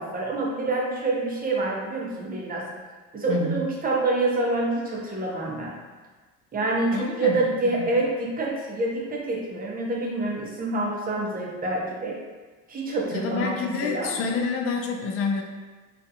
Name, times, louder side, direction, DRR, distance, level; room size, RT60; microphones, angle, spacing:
voice 1, 0.0-2.7 3.1-5.8 6.5-12.2 12.7-13.6 13.8-14.2, right 2 dB, 25° right, -2 dB, 0.6 m, -27 dB
voice 2, 3.3-3.6 6.9-7.4 7.6-7.9 13.1-15.4, left 4 dB, 40° left, 2 dB, 0.4 m, -28 dB
2.4 x 2.3 x 2.7 m, 1.3 s
supercardioid pair, 90°, 36 cm